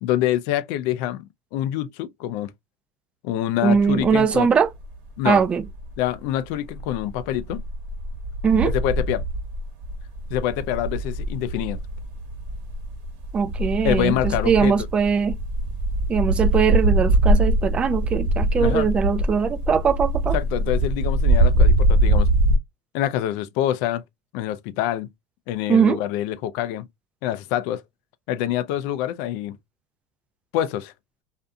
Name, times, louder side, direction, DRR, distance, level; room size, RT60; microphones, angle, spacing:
voice 1, 0.0-1.2 1.5-2.5 3.2-4.5 5.2-5.4 6.0-7.6 8.7-9.2 10.3-11.8 13.8-14.7 18.6-18.9 20.3-22.3 22.9-24.0 24.3-25.1 25.5-26.9 27.2-27.8 28.3-29.6 30.5-30.9, left 12 dB, 70° left, 0.3 m, -26 dB
voice 2, 3.6-4.7 5.2-5.6 8.4-8.7 13.3-15.3 16.1-20.4 25.7-26.0, right 6 dB, 25° right, 0.3 m, -21 dB
sound 1, 3.7-4.4 4.7-6.1 6.5-22.6, right 1 dB, 65° right, 1.1 m, -23 dB
2.6 x 2.5 x 2.2 m
supercardioid pair, 120°, 4 cm